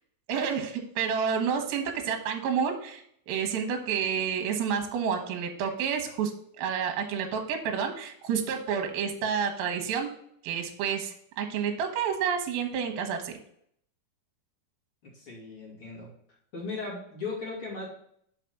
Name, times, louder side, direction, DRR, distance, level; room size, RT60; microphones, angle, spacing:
voice 1, 0.3-6.3 6.6-10.1 10.4-13.3, right 7 dB, 70° right, 4 dB, 2.6 m, -29 dB
voice 2, 15.0-16.1 16.5-17.9, left 3 dB, 40° left, -4 dB, 2.2 m, -37 dB
6.0 x 4.9 x 5.8 m, 0.67 s
omnidirectional pair, 5.0 m